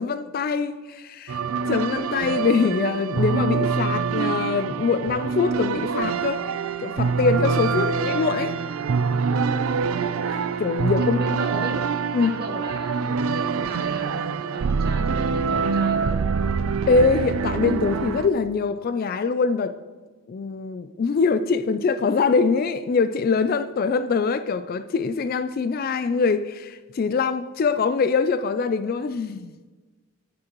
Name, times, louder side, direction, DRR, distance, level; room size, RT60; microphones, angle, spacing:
voice 1, 0.0-1.4 1.7-6.4 6.8-8.5 10.3-11.2 12.1-12.4 16.9-19.7 20.3-29.5, left 4 dB, 40° left, 0.3 m, -23 dB
sound 1, 1.3-18.3, right 5 dB, 75° right, 0.4 m, -25 dB
voice 2, 11.0-11.8 12.2-16.2, right 2 dB, 45° right, 1.2 m, -36 dB
11.5 x 9.6 x 3.0 m
head